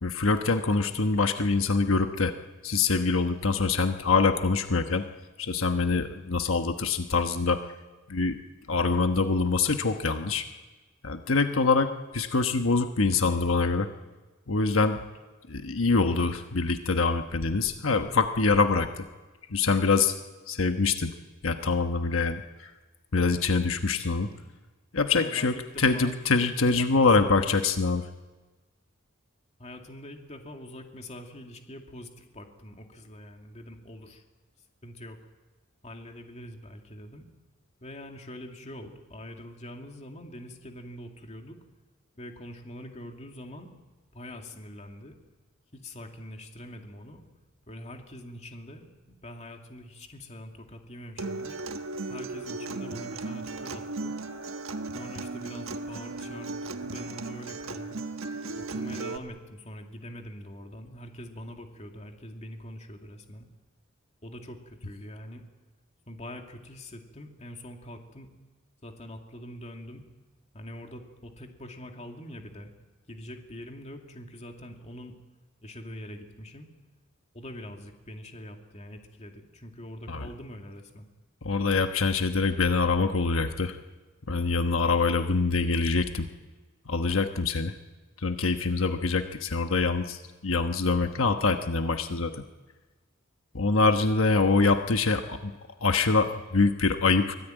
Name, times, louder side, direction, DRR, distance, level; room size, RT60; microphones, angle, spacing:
voice 1, 0.0-2.4 2.6-5.0 5.4-7.6 8.1-8.4 8.7-10.5 11.0-13.9 14.5-15.0 15.5-19.0 19.5-20.1 20.5-21.1 21.4-22.7 23.1-24.3 24.9-28.1 80.1-80.3 81.4-83.8 84.3-86.3 86.9-87.7 88.2-92.4 93.5-95.5 95.8-97.4, left 4 dB, 85° left, 6 dB, 1.2 m, -25 dB
voice 2, 25.1-26.1 26.6-27.3 29.6-34.2 34.8-35.2 35.8-37.3 37.8-41.6 42.2-43.7 44.1-45.2 45.7-47.2 47.7-51.6 52.1-54.2 54.9-58.0 58.5-63.5 64.2-65.4 66.1-68.3 68.8-70.1 70.5-72.7 73.1-75.2 75.6-76.7 77.3-81.1, left 1 dB, 35° left, 3 dB, 2.4 m, -44 dB
Acoustic guitar, 51.2-59.2, right 3 dB, 85° right, 1.4 m, -36 dB
24.0 x 17.5 x 9.1 m, 1.2 s
head